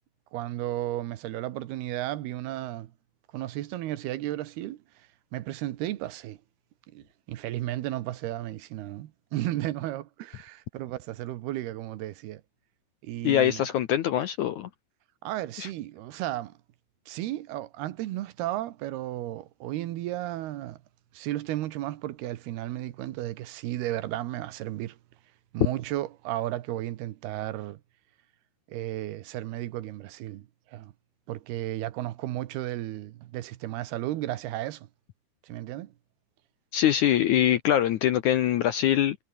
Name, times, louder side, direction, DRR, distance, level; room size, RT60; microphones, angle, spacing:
voice 1, 0.3-2.9 3.3-4.8 5.3-6.4 6.9-12.4 13.0-13.7 15.2-16.6 17.1-20.8 21.1-25.0 25.5-27.8 28.7-30.9 31.3-34.9 35.5-35.9, right 15 dB, 80° right, 3.1 m, -34 dB
voice 2, 13.2-14.7 15.6-15.7 36.7-39.2, left 11 dB, 70° left, 1.9 m, -23 dB
omnidirectional pair, 4.6 m